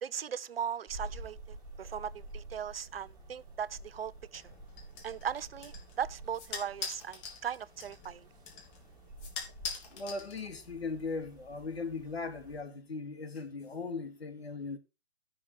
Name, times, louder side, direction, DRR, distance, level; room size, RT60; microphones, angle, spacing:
voice 1, 0.0-4.4 5.0-8.3, right 8 dB, 65° right, 0.8 m, -38 dB
sound 1, 0.9-12.6, right 2 dB, 10° right, 2.2 m, -50 dB
sound 2, 4.3-10.8, left 5 dB, 25° left, 2.9 m, -44 dB
voice 2, 9.9-14.8, left 4 dB, 75° left, 2.8 m, -38 dB
13.0 x 6.4 x 4.3 m
figure-of-eight pair, 140°, 32 cm